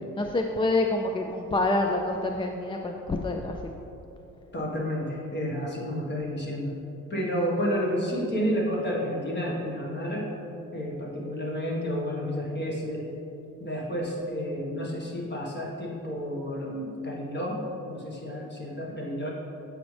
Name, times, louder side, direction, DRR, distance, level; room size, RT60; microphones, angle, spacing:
voice 1, 0.1-3.7, left 2 dB, 15° left, 3 dB, 0.3 m, -27 dB
voice 2, 4.5-6.7 7.1-10.3 10.7-13.1 13.6-17.6 17.9-19.3, equal, 35° left, -2 dB, 1.5 m, -30 dB
7.9 x 5.1 x 3.3 m, 2.9 s
cardioid pair, 90°, 30 cm